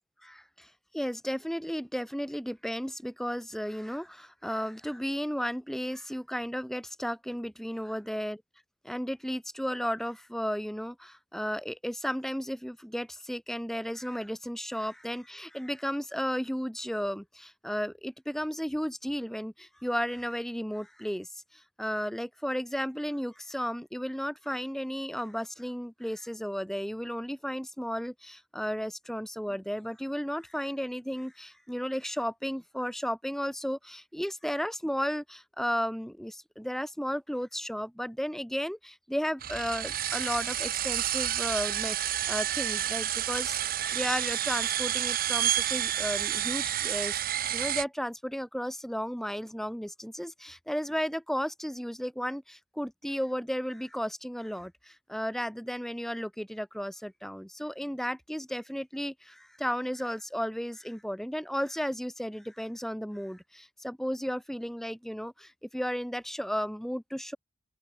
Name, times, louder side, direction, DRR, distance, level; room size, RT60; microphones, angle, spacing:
voice 1, 0.2-8.4 8.8-47.2 47.5-67.4, equal, ahead, 1.5 m, -34 dB
sound 1, 39.4-47.8, right 11 dB, 45° right, 1.0 m, -30 dB
open air
head